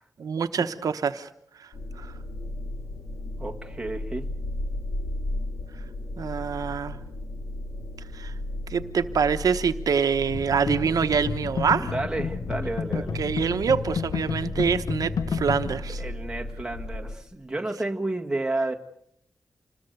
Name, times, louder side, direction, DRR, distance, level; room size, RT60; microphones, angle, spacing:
voice 1, 0.2-1.3 1.6-1.7 2.0-2.1 6.2-7.0 8.1-8.3 8.7-11.9 13.1-16.0, right 6 dB, 85° right, 8 dB, 1.0 m, -25 dB
sound 1, 1.7-17.2, left 1 dB, 60° left, 4.1 m, -35 dB
voice 2, 3.4-4.2 11.8-13.2 16.0-18.7, right 2 dB, 10° right, 1 dB, 1.7 m, -31 dB
sound 2, 10.3-15.8, left 6 dB, 80° left, 1.1 m, -31 dB
27.0 x 21.0 x 6.7 m, 0.73 s
wide cardioid pair, 180°, 6 cm